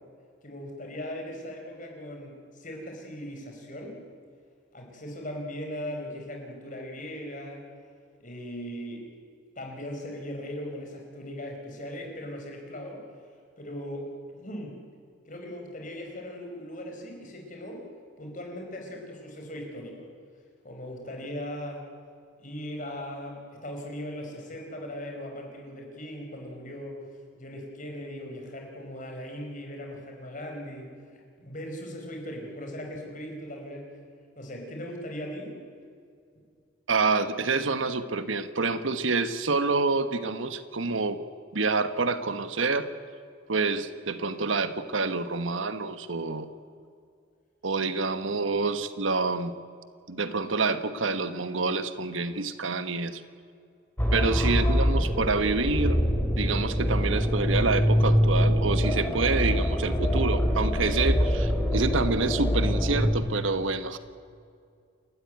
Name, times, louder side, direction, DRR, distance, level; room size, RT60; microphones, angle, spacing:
voice 1, 0.4-4.0 4.7-7.6 8.2-9.1 9.6-13.0 13.6-14.8 15.3-17.9 18.2-20.1 20.6-21.9 22.4-27.0 27.4-33.9 34.3-35.6 54.4-54.6, equal, 40° left, 2 dB, 4.8 m, -39 dB
voice 2, 36.9-41.2 41.5-42.9 43.5-46.5 47.6-49.5 50.1-53.2 54.1-56.0 56.4-64.0, right 3 dB, 85° right, 11 dB, 1.3 m, -27 dB
sound 1, 54.0-63.1, equal, 10° left, 3.3 m, -24 dB
29.0 x 13.5 x 9.4 m, 2.3 s
head